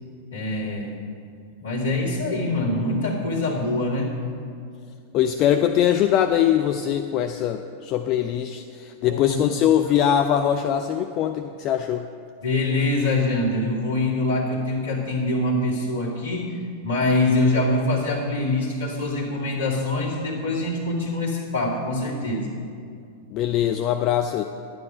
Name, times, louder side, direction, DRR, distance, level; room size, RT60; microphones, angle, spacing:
voice 1, 0.3-1.0 1.6-4.1 9.0-9.4 12.4-22.5, left 2 dB, 70° left, -5 dB, 2.3 m, -24 dB
voice 2, 5.1-12.1 23.3-24.4, left 10 dB, 40° left, 7 dB, 0.4 m, -22 dB
11.0 x 9.7 x 4.9 m, 2.4 s
figure-of-eight pair, 90°, 0 cm